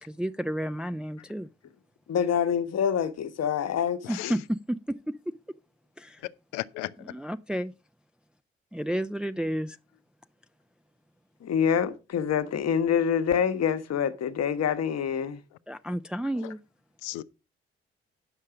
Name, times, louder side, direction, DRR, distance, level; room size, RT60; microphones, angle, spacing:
voice 1, 0.0-1.5 4.1-5.0 6.0-6.2 7.0-7.7 8.7-9.8 15.7-16.6, equal, 5° right, 0.5 m, -31 dB
voice 2, 2.1-4.3 11.4-15.4, left 8 dB, 55° left, 1.2 m, -26 dB
voice 3, 6.5-7.2 17.0-17.2, left 17 dB, 70° left, 0.6 m, -35 dB
9.9 x 6.5 x 4.9 m
hypercardioid pair, 40°, 31 cm